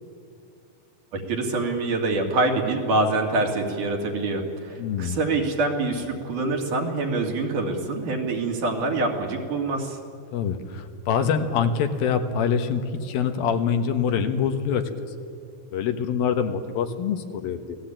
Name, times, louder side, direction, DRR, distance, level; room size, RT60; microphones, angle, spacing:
voice 1, 1.1-10.0, right 2 dB, 55° right, 2 dB, 3.9 m, -25 dB
voice 2, 4.8-5.2 10.3-14.8 15.7-17.8, left 7 dB, 75° left, 7 dB, 3.1 m, -25 dB
28.0 x 18.5 x 9.0 m, 2.5 s
omnidirectional pair, 4.4 m